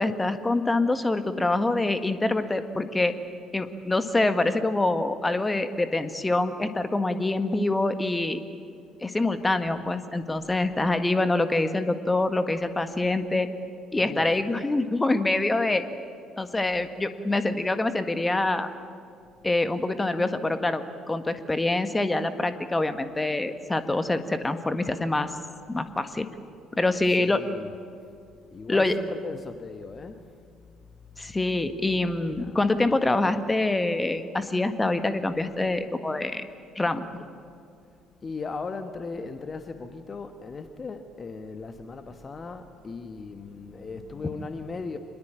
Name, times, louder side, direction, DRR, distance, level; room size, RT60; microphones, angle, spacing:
voice 1, 0.0-3.2 3.5-8.4 9.0-13.5 13.9-15.8 16.4-18.7 19.4-25.3 25.7-26.3 26.7-27.4 28.7-29.0 31.2-36.4 36.7-37.3, left 2 dB, 15° left, 10 dB, 1.6 m, -25 dB
voice 2, 14.0-14.3 27.2-27.7 28.0-28.2 28.5-31.4 32.2-32.6 37.9-45.0, left 4 dB, 35° left, 8 dB, 1.3 m, -38 dB
25.0 x 21.0 x 8.8 m, 2.3 s
figure-of-eight pair, 50°, 0 cm